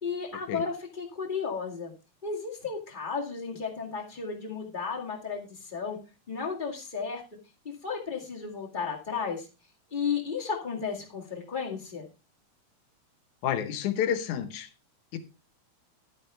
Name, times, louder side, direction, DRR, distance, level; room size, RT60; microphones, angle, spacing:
voice 1, 0.0-1.9 2.2-6.0 6.3-7.2 7.8-9.5 9.9-12.0, left 5 dB, 20° left, 1.8 m, -33 dB
voice 2, 13.4-14.7 15.1-15.2, left 9 dB, 90° left, 2.6 m, -29 dB
11.5 x 8.9 x 3.3 m
omnidirectional pair, 3.3 m